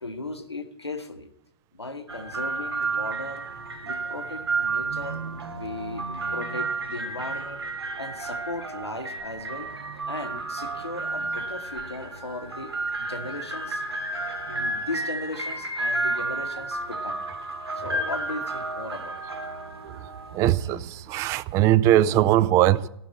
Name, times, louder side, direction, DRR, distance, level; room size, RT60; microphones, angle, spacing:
voice 1, 0.0-1.3 1.7-3.5 3.8-5.2 5.5-12.7 13.0-13.8 14.5-17.3 17.7-19.3, left 2 dB, 90° left, 1.4 m, -37 dB
sound 1, 2.1-21.2, right 3 dB, 75° right, 1.6 m, -32 dB
Wind instrument woodwind instrument, 10.2-18.5, left 9 dB, 15° left, 0.9 m, -47 dB
voice 2, 20.3-22.9, right 13 dB, 20° right, 0.4 m, -21 dB
15.0 x 6.1 x 8.2 m
figure-of-eight pair, 115°, 13 cm